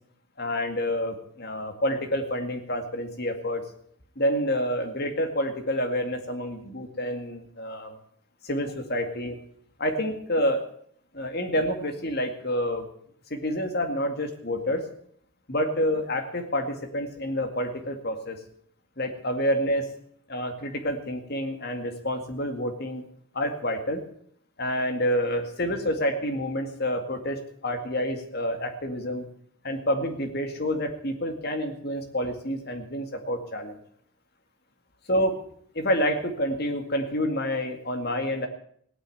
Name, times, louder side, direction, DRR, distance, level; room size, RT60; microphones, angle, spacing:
voice 1, 0.4-3.6 4.2-7.9 8.4-9.4 9.8-10.6 11.1-12.9 13.3-14.9 15.5-18.4 19.0-19.9 20.3-23.1 23.3-24.0 24.6-29.3 29.6-33.8 35.1-35.4 35.7-38.5, equal, 45° left, 5 dB, 2.1 m, -28 dB
17.5 x 9.4 x 8.0 m, 0.63 s
head